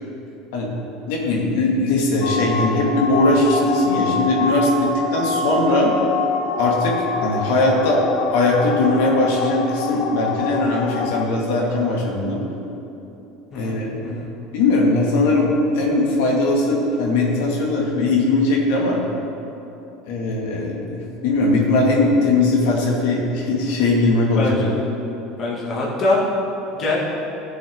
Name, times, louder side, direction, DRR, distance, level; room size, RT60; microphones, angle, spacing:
voice 1, 1.1-5.9 6.6-8.0 8.3-12.4 13.5-14.2 14.5-15.5 15.7-19.0 20.1-24.5, left 2 dB, 80° left, -2 dB, 2.0 m, -20 dB
sound 1, 2.2-11.2, left 4 dB, 60° left, 0.9 m, -25 dB
voice 2, 13.5-14.3 24.4-24.8 25.4-26.2 26.7-27.0, left 2 dB, 30° left, -5 dB, 2.0 m, -23 dB
16.5 x 7.0 x 3.7 m, 2.9 s
cardioid pair, 170°, 0 cm